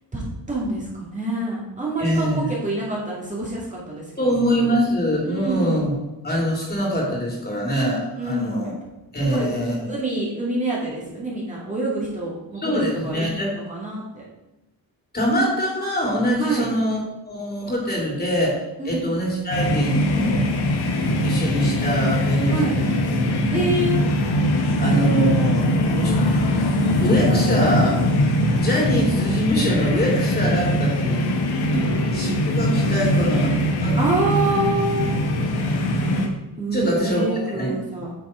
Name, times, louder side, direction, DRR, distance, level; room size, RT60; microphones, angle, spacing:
voice 1, 0.1-4.3 4.6-4.8 5.2-5.8 8.1-8.7 9.3-9.5 9.8-14.3 16.4-16.7 18.8-19.1 22.5-22.8 23.5-24.0 31.7-31.8 34.0-35.1 36.6-38.1, right 2 dB, 20° right, -5 dB, 2.1 m, -27 dB
voice 2, 2.0-2.4 4.2-5.9 6.2-8.7 9.1-9.8 12.6-13.5 15.1-20.5 21.2-22.9 23.5-23.6 24.8-28.0 28.6-31.2 32.1-34.0 36.7-37.7, equal, 25° left, -3 dB, 3.1 m, -24 dB
sound 1, 19.5-36.3, left 1 dB, 75° left, 1.4 m, -21 dB
9.2 x 6.0 x 4.4 m, 0.99 s
cardioid pair, 120°, 39 cm